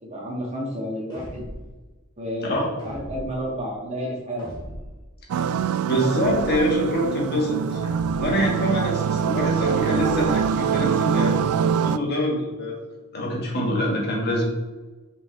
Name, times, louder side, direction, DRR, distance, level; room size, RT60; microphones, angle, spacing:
voice 1, 0.0-1.4 2.2-4.4, equal, 30° right, -3 dB, 1.7 m, -31 dB
sound 1, 1.1-1.7 2.8-3.5 4.4-5.0 6.1-6.8 7.8-8.5 9.8-10.5, equal, 20° left, 2.0 m, -38 dB
sound 2, 5.3-12.0, right 7 dB, 80° right, 0.3 m, -24 dB
voice 2, 5.8-7.8 8.2-12.8 13.1-14.4, equal, 50° left, -3 dB, 1.8 m, -25 dB
5.3 x 5.3 x 3.4 m, 1.2 s
head